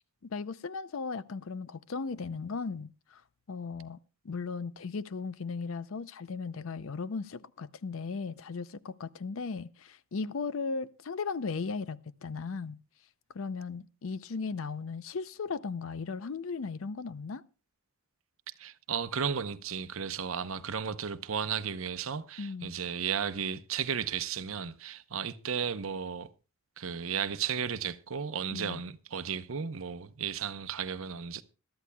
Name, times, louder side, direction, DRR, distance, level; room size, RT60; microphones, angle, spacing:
voice 1, 0.2-3.2 3.5-12.8 13.3-17.4 22.4-22.7 28.5-28.8, left 4 dB, 65° left, 0.5 m, -37 dB
voice 2, 18.6-26.3 26.8-31.4, right 7 dB, 70° right, 0.8 m, -34 dB
21.5 x 12.5 x 2.3 m
head